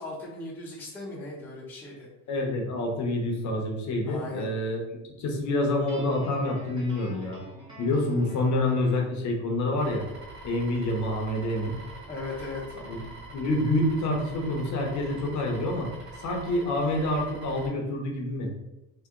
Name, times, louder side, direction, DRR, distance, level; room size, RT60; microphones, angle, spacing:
voice 1, 0.0-2.1 4.0-4.5 12.1-12.6, left 3 dB, 5° left, -6 dB, 0.5 m, -37 dB
voice 2, 2.3-4.8 5.2-7.4 7.8-10.0 10.4-11.8 12.8-13.0 13.3-15.9 16.2-18.5, left 1 dB, 40° left, 1 dB, 0.6 m, -27 dB
Guitar, 5.9-9.1, equal, 10° right, 1.0 m, -48 dB
sound 1, 9.8-17.7, right 2 dB, 30° right, 1.5 m, -44 dB
2.9 x 2.8 x 3.6 m, 0.94 s
cardioid pair, 170°, 43 cm